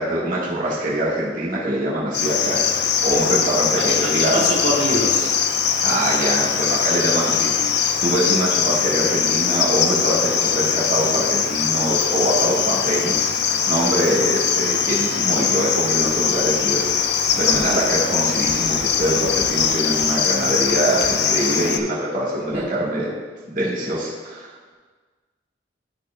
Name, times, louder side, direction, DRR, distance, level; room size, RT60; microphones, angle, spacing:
voice 1, 0.0-4.4 5.8-23.1 23.5-24.7, right 1 dB, 45° right, -7 dB, 1.8 m, -24 dB
Cricket, 2.1-21.8, left 7 dB, 60° left, 0.5 m, -21 dB
voice 2, 3.8-5.3 22.5-22.7, right 1 dB, 80° right, -5 dB, 1.8 m, -24 dB
12.5 x 6.5 x 2.4 m, 1.4 s
head